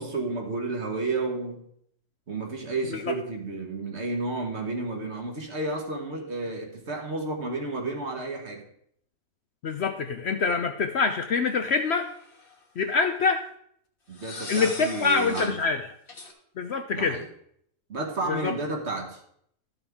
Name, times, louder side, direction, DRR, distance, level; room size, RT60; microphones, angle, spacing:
voice 1, 0.0-1.7 2.3-8.7 14.1-15.6 16.9-17.3 17.9-19.2, right 2 dB, 50° right, 2 dB, 1.7 m, -31 dB
voice 2, 9.6-12.1 12.8-13.4 14.5-15.8 16.6-17.2 18.3-18.5, left 4 dB, 60° left, 7 dB, 0.8 m, -25 dB
sound 1, 11.9-12.6 14.1-15.6 16.1-16.3, left 3 dB, 40° left, 1.5 m, -39 dB
13.0 x 7.0 x 3.6 m, 0.68 s
omnidirectional pair, 1.5 m